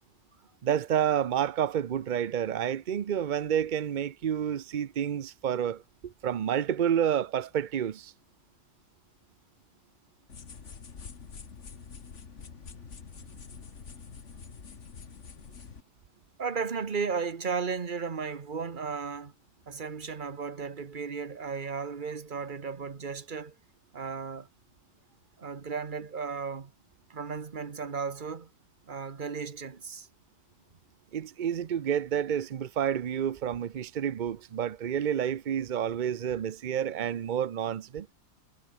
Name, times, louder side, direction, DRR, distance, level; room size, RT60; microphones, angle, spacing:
voice 1, 0.6-8.1 31.1-38.1, right 9 dB, 75° right, 0.4 m, -29 dB
sound 1, 10.3-15.8, left 5 dB, 45° left, 1.9 m, -46 dB
voice 2, 16.4-19.3 19.7-23.6 23.9-24.5 25.4-26.7 27.1-28.5 28.9-30.1, right 5 dB, 35° right, 1.3 m, -35 dB
omnidirectional pair, 1.7 m